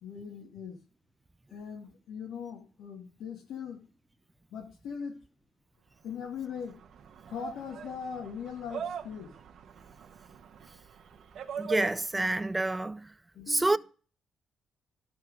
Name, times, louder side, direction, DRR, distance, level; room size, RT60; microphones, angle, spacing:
voice 1, 0.0-0.8 1.5-3.8 4.5-5.2 6.0-6.8 7.3-9.3 13.4-13.8, left 7 dB, 80° left, 2.0 m, -40 dB
sound 1, 6.1-12.4, right 7 dB, 65° right, 1.0 m, -43 dB
voice 2, 11.6-13.1 13.5-13.8, right 2 dB, 15° right, 0.3 m, -28 dB
13.0 x 4.6 x 5.0 m
cardioid pair, 90°, 0 cm